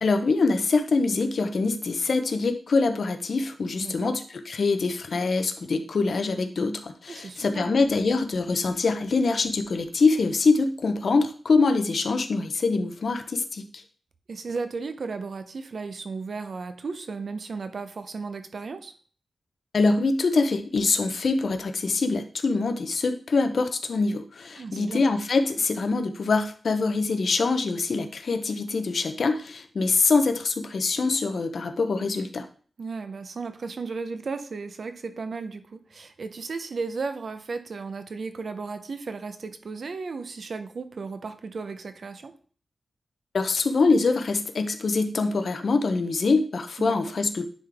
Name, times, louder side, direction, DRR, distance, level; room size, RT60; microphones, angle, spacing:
voice 1, 0.0-13.8 19.7-32.5 43.3-47.5, left 3 dB, 55° left, 8 dB, 0.7 m, -24 dB
voice 2, 3.8-4.1 7.1-7.8 14.3-18.9 24.5-25.0 32.8-42.3 46.8-47.0, right 4 dB, 55° right, 10 dB, 0.6 m, -35 dB
9.9 x 3.8 x 3.4 m, 0.44 s
wide cardioid pair, 175°, 0 cm